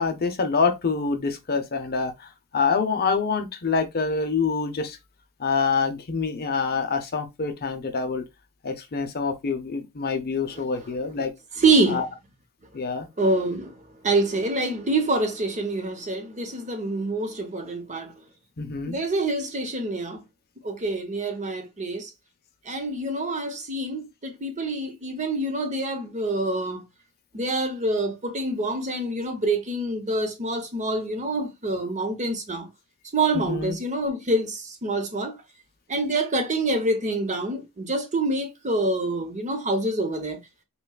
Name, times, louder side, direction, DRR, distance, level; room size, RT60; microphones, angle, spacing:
voice 1, 0.0-5.0 5.4-8.2 8.6-11.3 11.9-12.0 12.7-13.1 18.6-19.0 33.3-33.8, left 4 dB, 45° left, 0.6 m, -26 dB
voice 2, 11.6-12.1 13.2-18.2 18.9-20.2 20.6-22.1 22.6-26.8 27.3-32.7 33.1-35.4 35.9-40.4, right 2 dB, 35° right, 0.9 m, -26 dB
5.5 x 2.3 x 2.3 m
head